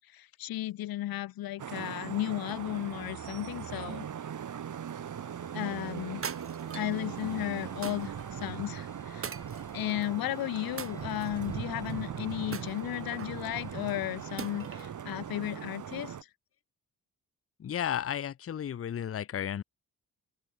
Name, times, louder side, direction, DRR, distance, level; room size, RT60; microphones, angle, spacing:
voice 1, 0.0-4.1 5.5-6.2 6.7-9.3 9.7-16.2, left 14 dB, 90° left, 0.7 m, -34 dB
Vehicle horn car horn honking / Traffic noise roadway noise, 1.6-16.2, right 8 dB, 60° right, 3.0 m, -40 dB
sound 1, 4.5-14.9, left 1 dB, 10° left, 3.4 m, -54 dB
sound 2, 6.2-7.0 7.8-8.3 9.2-10.1 10.8-11.5 12.5-13.4 14.4-14.9, right 6 dB, 40° right, 1.8 m, -41 dB
voice 2, 17.6-19.6, left 9 dB, 40° left, 0.7 m, -33 dB
open air
cardioid pair, 120°, 34 cm